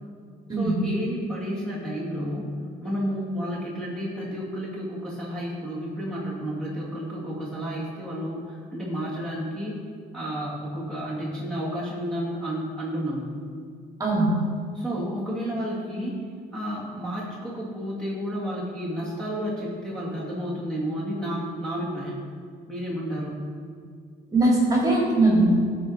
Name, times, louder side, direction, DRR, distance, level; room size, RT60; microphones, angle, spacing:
voice 1, 0.6-2.5 2.8-9.9 10.1-13.3 14.7-16.3 16.5-22.2 22.7-23.4, equal, 5° left, -7 dB, 2.0 m, -31 dB
voice 2, 14.0-14.3 24.3-25.4, right 2 dB, 20° right, -3 dB, 2.3 m, -20 dB
13.0 x 4.5 x 4.1 m, 2.2 s
cardioid pair, 110°, 17 cm